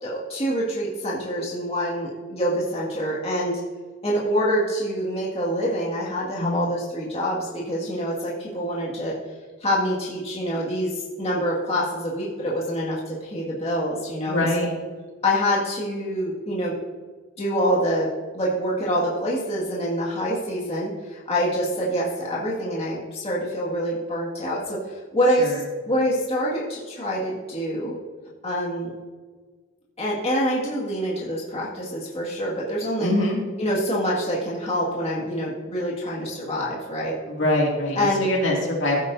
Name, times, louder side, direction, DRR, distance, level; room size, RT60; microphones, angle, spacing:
voice 1, 0.0-3.6 4.0-9.2 9.6-14.5 15.2-16.8 17.4-18.1 18.3-25.5 25.9-28.0 28.4-28.9 30.0-33.1 33.6-37.2 38.0-38.3, equal, 30° left, -5 dB, 2.1 m, -26 dB
voice 2, 14.3-14.7 25.4-25.6 33.0-33.4 37.3-39.0, left 1 dB, 60° left, -2 dB, 2.5 m, -23 dB
15.5 x 9.0 x 2.7 m, 1.4 s
head